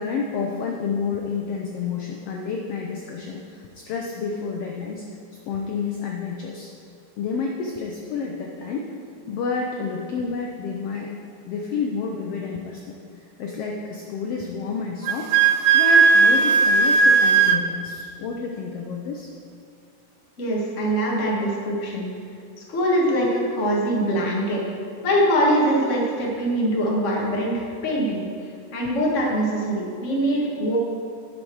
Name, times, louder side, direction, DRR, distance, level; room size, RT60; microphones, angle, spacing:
voice 1, 0.0-5.1 5.5-6.7 7.2-8.9 9.3-11.1 11.5-19.3, left 5 dB, 85° left, 0 dB, 1.3 m, -30 dB
Wind instrument woodwind instrument, 15.0-17.6, right 5 dB, 85° right, 1.5 m, -16 dB
voice 2, 20.4-22.1 22.7-24.6 25.0-28.3 28.7-30.8, equal, 35° left, -3 dB, 1.3 m, -23 dB
11.5 x 5.1 x 6.3 m, 2.4 s
omnidirectional pair, 3.7 m